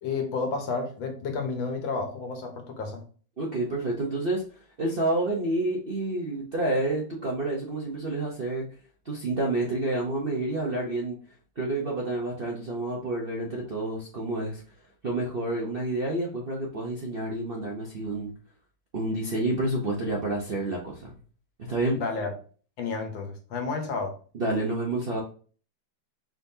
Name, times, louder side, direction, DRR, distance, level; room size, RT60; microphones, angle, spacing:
voice 1, 0.0-3.0 21.9-22.3 22.8-24.1, left 4 dB, 75° left, 4 dB, 1.7 m, -31 dB
voice 2, 3.4-4.4 4.8-8.6 9.0-11.2 11.6-14.6 15.0-18.3 18.9-21.1 21.6-22.0 24.3-25.2, right 2 dB, 60° right, -2 dB, 0.6 m, -29 dB
5.1 x 3.6 x 2.7 m, 0.40 s
omnidirectional pair, 2.2 m